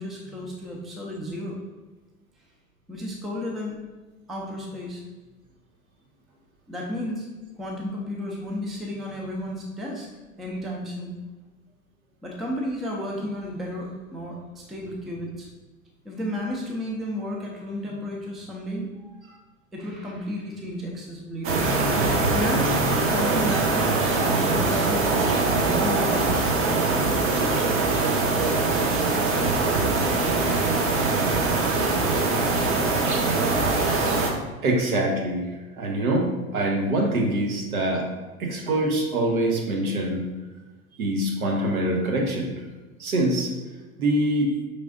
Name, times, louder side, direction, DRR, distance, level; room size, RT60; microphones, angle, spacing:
voice 1, 0.0-1.6 2.9-3.8 4.3-5.0 6.7-7.3 7.6-10.1 10.4-11.1 12.2-15.5 16.0-19.4 19.7-21.9 22.1-25.3 25.6-26.2, left 1 dB, ahead, -2 dB, 0.3 m, -33 dB
sound 1, 21.4-34.3, right 3 dB, 30° right, 0.8 m, -22 dB
voice 2, 34.6-35.5 35.8-38.1 38.4-40.2 41.0-42.5 43.0-43.5 44.0-44.5, right 1 dB, 80° right, 0 dB, 1.0 m, -24 dB
5.1 x 3.3 x 2.5 m, 1.2 s
hypercardioid pair, 90°, 42 cm